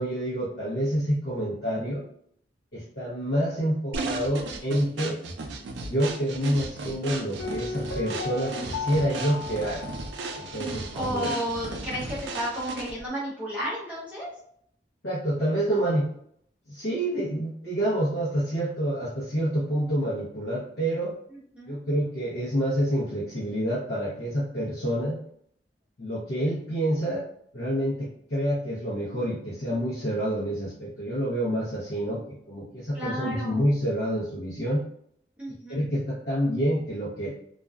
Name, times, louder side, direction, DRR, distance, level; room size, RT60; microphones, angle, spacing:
voice 1, 0.0-2.0 2.7-5.2 5.8-9.9 10.3-11.3 15.0-16.1 16.7-21.1 21.7-25.2 26.0-27.2 27.5-34.8 35.7-37.3, equal, 65° left, -8 dB, 0.7 m, -28 dB
sound 1, 3.9-13.1, right 3 dB, 75° right, 0.4 m, -35 dB
Piano, 7.4-11.2 11.4-11.5, left 4 dB, 90° left, 0.3 m, -36 dB
voice 2, 10.9-14.3 21.5-21.8 32.9-33.6 35.4-35.8, equal, 5° right, -7 dB, 0.6 m, -32 dB
2.4 x 2.1 x 2.3 m, 0.67 s
head